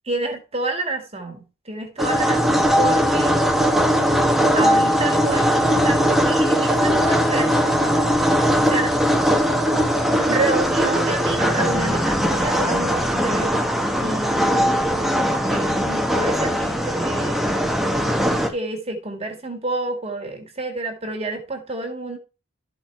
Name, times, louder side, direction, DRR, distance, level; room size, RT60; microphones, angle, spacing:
voice 1, 0.1-3.4 4.5-8.1 8.5-9.1 10.2-17.7 18.5-22.2, right 2 dB, 25° right, 1.8 m, -29 dB
sound 1, 2.0-18.5, equal, ahead, 1.0 m, -20 dB
12.5 x 4.5 x 4.6 m
head